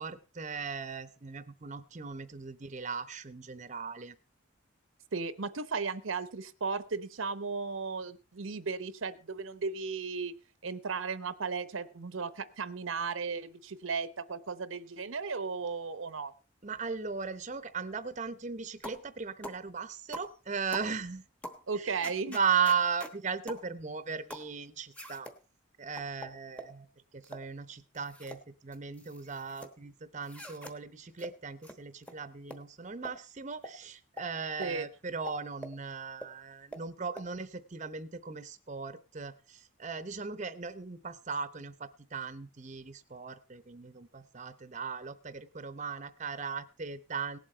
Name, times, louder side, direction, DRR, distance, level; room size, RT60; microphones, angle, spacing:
voice 1, 0.0-4.1 16.6-21.2 21.8-25.3 25.8-26.9 27.1-47.4, right 6 dB, 35° right, 13 dB, 0.7 m, -37 dB
voice 2, 5.1-10.3 10.6-16.3 21.7-22.4 34.6-34.9, right 4 dB, 80° right, 14 dB, 0.8 m, -35 dB
sound 1, 18.8-19.1 19.4-19.6 20.1-20.3 20.7-20.9 21.4-21.6 22.0-23.1 23.5-23.7 24.3-24.5 24.9-25.4 26.0-26.7 27.2-27.5 27.9-28.4 28.7-29.7 30.2-30.7 31.2-31.3 31.6-31.8 32.0-32.1 32.5-32.6 33.0-33.2 33.6-33.7 34.2-34.3 34.6-34.7 35.3-35.8 36.2-36.3 36.7-36.8 37.2-37.3, equal, 5° left, 1.1 m, -44 dB
18.0 x 7.7 x 4.4 m, 0.34 s
head